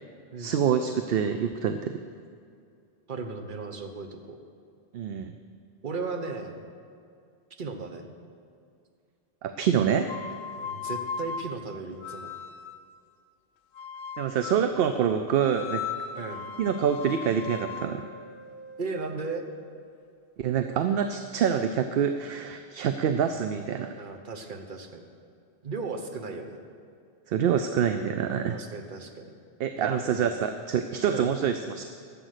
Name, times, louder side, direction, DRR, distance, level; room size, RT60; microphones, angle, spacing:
voice 1, 0.4-2.0 4.9-5.3 9.4-10.1 14.2-15.9 16.6-18.1 20.4-24.0 27.3-28.6 29.6-31.8, right 8 dB, 65° right, 8 dB, 0.7 m, -26 dB
voice 2, 3.1-4.4 5.8-6.6 7.6-8.0 10.5-12.3 16.2-16.4 18.8-19.4 24.0-25.1 25.6-26.6 28.5-29.3 29.8-30.3 31.1-31.3, right 4 dB, 50° right, 4 dB, 1.1 m, -36 dB
sound 1, 10.0-12.9 13.7-14.8 15.4-19.4, left 6 dB, 80° left, 0.9 m, -38 dB
11.5 x 7.6 x 6.5 m, 2.4 s
omnidirectional pair, 1.1 m